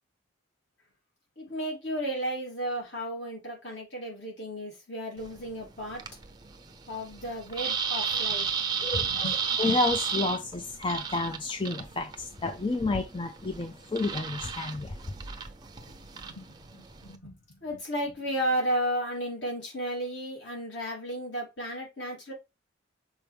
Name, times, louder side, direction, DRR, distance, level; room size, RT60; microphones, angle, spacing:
voice 1, 1.4-6.0 6.9-9.3 9.6-9.8 16.1-22.3, equal, 60° left, 3.3 m, -34 dB
sound 1, 5.2-17.2, right 6 dB, 20° right, 0.6 m, -34 dB
voice 2, 8.8-9.3 9.6-14.9, left 3 dB, 25° left, 0.5 m, -30 dB
6.3 x 4.3 x 3.4 m
head